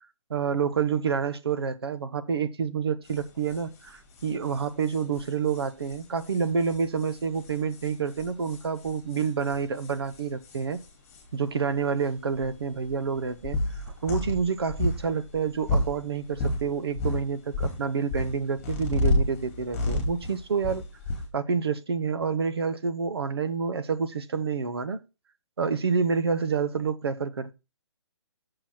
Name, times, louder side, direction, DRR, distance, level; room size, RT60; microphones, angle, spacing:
voice 1, 0.3-10.8 11.3-13.6 13.9-20.8 21.3-25.0 25.6-27.5, right 6 dB, 55° right, 1.0 m, -28 dB
sound 1, 3.1-3.2 3.5-3.6 3.9-4.0 4.1-11.3 12.0-12.1 12.4-16.7 17.0-21.3, left 1 dB, 10° left, 2.3 m, -30 dB
6.8 x 6.0 x 6.0 m
hypercardioid pair, 180°, 16 cm